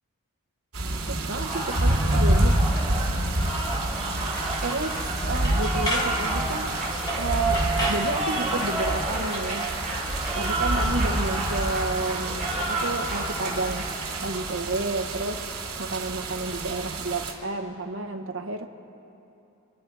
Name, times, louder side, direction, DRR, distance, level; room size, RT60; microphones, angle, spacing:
sound 1, 0.7-17.3, right 1 dB, 90° right, 2.7 m, -28 dB
voice 1, 1.0-2.6 4.6-6.7 7.1-9.7 10.3-13.9 14.2-15.4 15.8-18.7, right 2 dB, 65° right, 6 dB, 1.0 m, -31 dB
Applause, 1.2-14.8, right 1 dB, ahead, 3.8 m, -31 dB
sound 2, 4.4-4.5 4.9-5.1 5.5-6.1 7.1-7.3 7.5-8.1 9.3-9.7, equal, 20° left, 1.8 m, -31 dB
27.0 x 10.0 x 4.6 m, 2.8 s
head